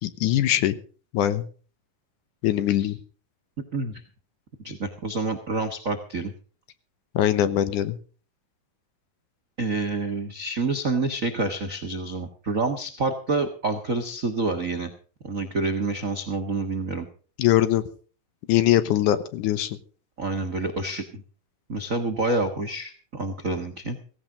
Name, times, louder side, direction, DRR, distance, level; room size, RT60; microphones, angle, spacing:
voice 1, 0.0-0.8 1.1-1.5 2.4-3.0 7.1-8.0 17.4-17.8 18.5-19.7, left 12 dB, 70° left, 12 dB, 2.4 m, -22 dB
voice 2, 4.6-6.3 9.6-14.9 15.2-17.0 20.2-21.2 21.7-24.0, right 3 dB, 55° right, 4 dB, 0.9 m, -28 dB
16.5 x 16.5 x 3.9 m, 0.39 s
omnidirectional pair, 3.9 m